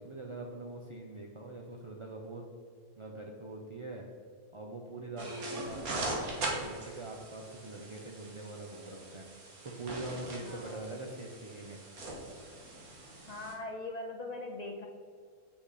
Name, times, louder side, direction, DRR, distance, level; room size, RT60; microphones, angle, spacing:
voice 1, 0.0-2.4 3.0-4.1 4.5-9.3 9.6-11.8, right 2 dB, 40° right, -1 dB, 0.4 m, -43 dB
sound 1, 5.2-13.5, right 2 dB, 80° right, 1.9 m, -41 dB
voice 2, 10.4-10.8 13.3-14.9, left 2 dB, 60° left, 2 dB, 0.4 m, -41 dB
8.0 x 5.8 x 4.1 m, 2.2 s
omnidirectional pair, 1.5 m